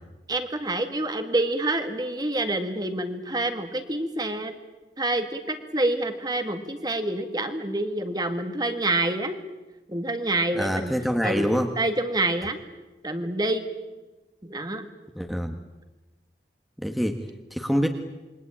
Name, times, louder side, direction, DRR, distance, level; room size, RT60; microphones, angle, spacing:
voice 1, 0.3-4.5 5.0-9.4 9.9-10.9 11.2-11.5 11.8-12.6 13.0-13.6 14.4-14.9, right 2 dB, 20° right, 7 dB, 1.9 m, -27 dB
voice 2, 10.5-11.7 15.1-15.5 16.8-17.9, equal, ahead, 4 dB, 1.5 m, -26 dB
27.5 x 23.0 x 8.8 m, 1.1 s
head